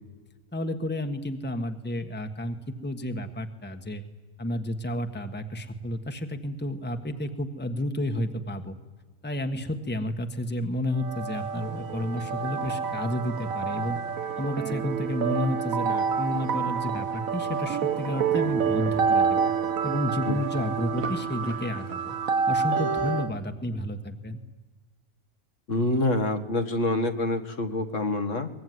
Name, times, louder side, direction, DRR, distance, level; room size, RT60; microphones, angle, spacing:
voice 1, 0.5-2.6 2.8-4.0 4.4-8.7 9.2-14.0 14.4-19.5 19.8-22.1 22.5-24.4, left 1 dB, 10° left, 6 dB, 1.4 m, -31 dB
sound 1, 11.0-23.3, right 6 dB, 90° right, 1.5 m, -28 dB
voice 2, 25.7-28.5, left 2 dB, 65° left, 7 dB, 2.0 m, -26 dB
23.5 x 21.0 x 9.5 m, 1.3 s
omnidirectional pair, 1.4 m